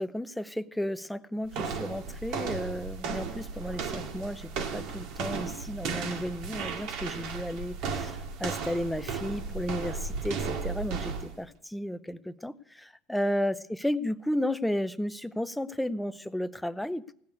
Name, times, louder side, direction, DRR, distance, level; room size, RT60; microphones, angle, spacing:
voice 1, 0.0-8.1 8.4-17.1, equal, 5° left, 11 dB, 0.6 m, -33 dB
sound 1, 1.5-11.4, right 5 dB, 60° right, 2.1 m, -35 dB
16.5 x 6.6 x 9.6 m, 0.69 s
supercardioid pair, 140°, 0 cm